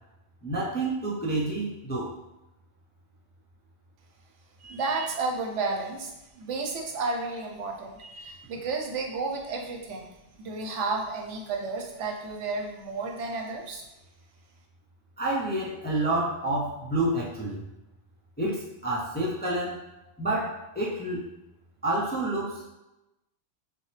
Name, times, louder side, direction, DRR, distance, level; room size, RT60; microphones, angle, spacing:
voice 1, 0.4-2.1 15.2-17.6 18.4-19.8 20.2-21.3 21.8-22.7, right 2 dB, 15° left, -4 dB, 0.4 m, -29 dB
voice 2, 4.6-6.1 6.4-10.1 10.4-13.8, right 3 dB, 85° right, 1 dB, 1.1 m, -32 dB
5.9 x 2.0 x 3.3 m, 0.97 s
omnidirectional pair, 1.2 m